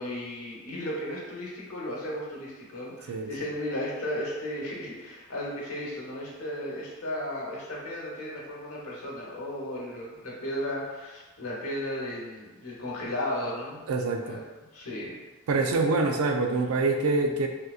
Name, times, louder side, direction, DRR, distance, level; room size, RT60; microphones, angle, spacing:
voice 1, 0.0-13.8 14.2-14.4 14.7-15.2 15.8-15.9, left 1 dB, 85° left, -4 dB, 1.0 m, -35 dB
voice 2, 13.9-14.4 15.5-17.5, right 3 dB, 75° right, 4 dB, 0.4 m, -25 dB
3.5 x 2.7 x 2.4 m, 1.2 s
head